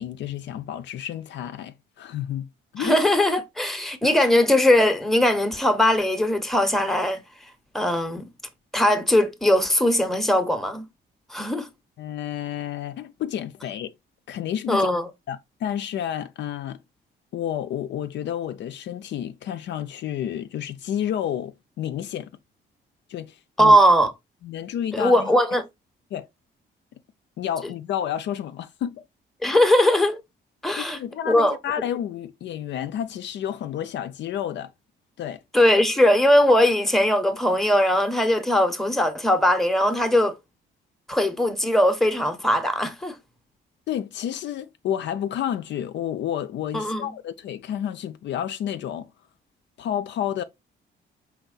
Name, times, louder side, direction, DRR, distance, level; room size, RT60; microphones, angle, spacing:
voice 1, 0.0-3.0 4.0-4.1 12.0-13.9 14.3-14.9 15.3-16.8 17.3-22.3 23.1-23.8 24.4-25.3 26.1-26.3 27.4-29.0 29.5-29.6 30.8-34.7 35.2-35.4 43.9-49.1 49.8-50.4, left 10 dB, 65° left, 0.4 m, -30 dB
voice 2, 2.8-7.2 7.7-8.3 8.7-10.8 11.3-11.7 14.7-15.1 23.6-24.1 24.9-25.6 29.4-30.2 30.6-31.0 31.3-31.6 35.5-40.4 41.1-43.2 46.7-47.1, left 1 dB, ahead, 0.7 m, -20 dB
4.5 x 3.5 x 2.4 m
cardioid pair, 90°, 20 cm